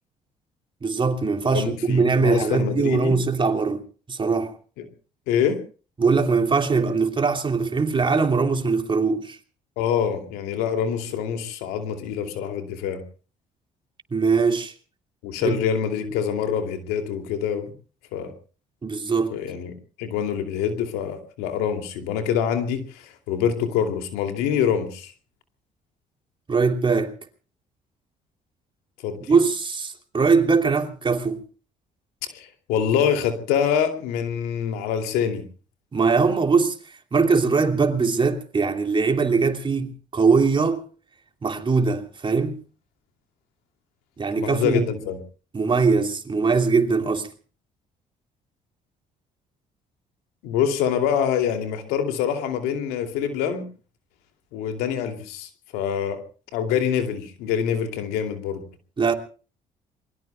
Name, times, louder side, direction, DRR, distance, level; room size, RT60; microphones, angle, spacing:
voice 1, 0.8-3.8 4.1-4.5 6.0-9.4 14.1-14.7 15.4-15.6 18.8-19.4 26.5-27.1 29.3-31.4 35.9-36.7 37.1-40.8 41.4-42.6 44.2-44.8 45.5-47.3 59.0-59.1, right 4 dB, 35° right, 3.0 m, -21 dB
voice 2, 1.5-3.2 4.8-4.9 5.3-5.6 9.8-13.0 15.2-17.7 18.1-18.3 19.3-19.7 20.0-25.1 29.0-29.2 32.3-35.5 44.4-45.2 50.4-53.7 54.5-56.2 56.5-58.6, left 8 dB, 85° left, 2.6 m, -25 dB
28.0 x 22.5 x 2.3 m
supercardioid pair, 65°, 15 cm